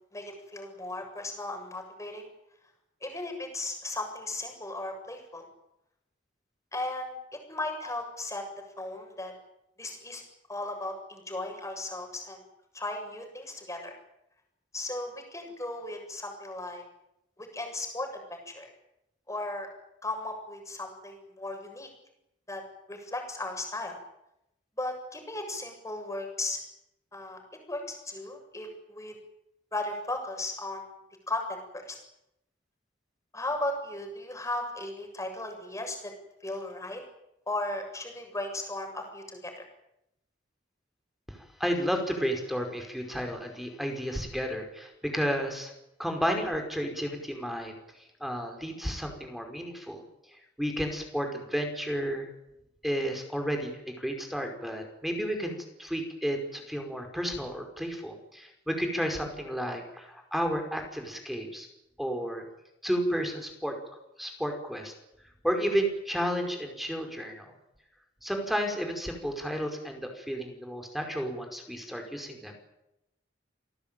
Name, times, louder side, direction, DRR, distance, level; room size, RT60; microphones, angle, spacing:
voice 1, 0.1-2.3 3.0-5.4 6.7-7.2 7.5-8.4 8.8-9.3 9.8-10.2 10.5-12.4 12.7-13.9 14.7-16.8 17.4-18.7 19.3-19.7 20.0-21.9 22.5-22.6 22.9-24.0 24.8-26.6 27.1-27.4 27.7-29.1 29.7-30.9 31.3-32.0 33.3-36.1 36.4-37.0 37.5-39.6, left 2 dB, 15° left, 3 dB, 7.3 m, -36 dB
voice 2, 41.3-45.7 46.0-50.0 50.6-52.3 52.8-61.7 62.0-62.4 62.8-63.8 64.2-64.9 65.4-67.5 68.2-72.5, equal, ahead, 4 dB, 5.1 m, -32 dB
28.5 x 18.5 x 9.2 m, 0.84 s
head